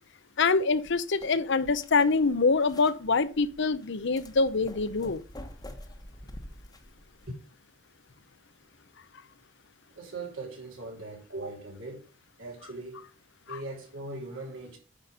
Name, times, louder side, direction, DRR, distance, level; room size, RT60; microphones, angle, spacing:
voice 1, 0.4-5.2 13.5-13.6, left 4 dB, 65° left, 0.7 m, -25 dB
sound 1, 0.7-7.3, left 1 dB, 20° left, 1.3 m, -48 dB
voice 2, 9.9-12.1 12.4-13.1 13.5-14.8, right 2 dB, 75° right, 3.7 m, -40 dB
9.8 x 5.9 x 5.2 m
head